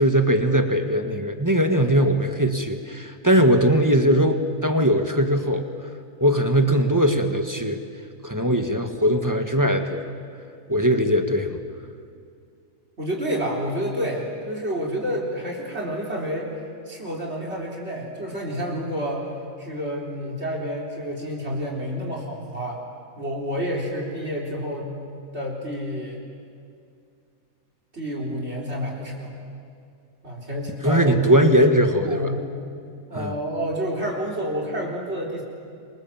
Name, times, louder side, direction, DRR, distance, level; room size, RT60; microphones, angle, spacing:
voice 1, 0.0-5.7 6.2-7.8 8.2-10.0 10.7-11.5 30.8-32.3 33.1-33.3, equal, 15° right, 6 dB, 1.6 m, -20 dB
voice 2, 13.0-16.5 16.9-19.2 19.6-22.8 23.2-24.9 25.3-26.2 27.9-29.5 30.2-31.5 32.0-32.7 33.1-35.4, equal, 50° right, -2 dB, 4.5 m, -29 dB
27.0 x 24.5 x 7.5 m, 2.4 s
omnidirectional pair, 1.5 m